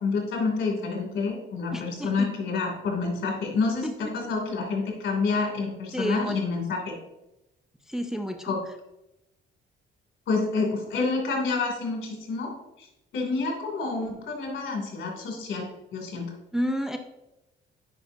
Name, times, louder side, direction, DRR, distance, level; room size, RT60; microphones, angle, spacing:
voice 1, 0.0-6.9 8.4-8.6 10.3-12.5 12.8-12.9 13.1-16.3, left 4 dB, 70° left, 0 dB, 2.7 m, -28 dB
voice 2, 1.7-2.3 3.8-3.9 5.9-6.4 7.9-8.6 16.5-17.0, equal, ahead, 5 dB, 0.5 m, -30 dB
9.4 x 5.3 x 2.7 m, 0.92 s
cardioid pair, 90°, 20 cm